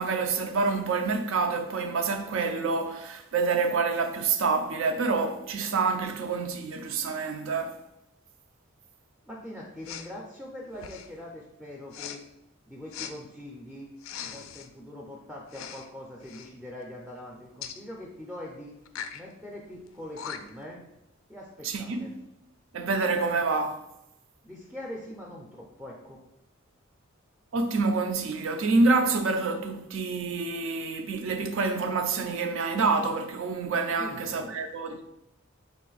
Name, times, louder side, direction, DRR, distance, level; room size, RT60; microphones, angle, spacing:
voice 1, 0.0-7.8 21.6-22.1 22.7-23.8 27.5-35.0, right 4 dB, 65° right, 0.4 m, -27 dB
voice 2, 9.3-12.2 12.7-13.9 14.3-18.8 19.1-20.8 21.3-22.1 24.4-26.2 33.9-34.5, left 1 dB, 5° right, 0.4 m, -42 dB
Respiratory sounds, 9.8-10.1 10.7-11.2 11.9-12.2 12.9-13.1 14.0-14.7 15.5-15.9 16.2-16.5 17.6-17.8 18.9-19.2 19.9-20.0 20.2-20.6, left 8 dB, 75° left, 0.3 m, -40 dB
4.0 x 2.5 x 3.9 m
head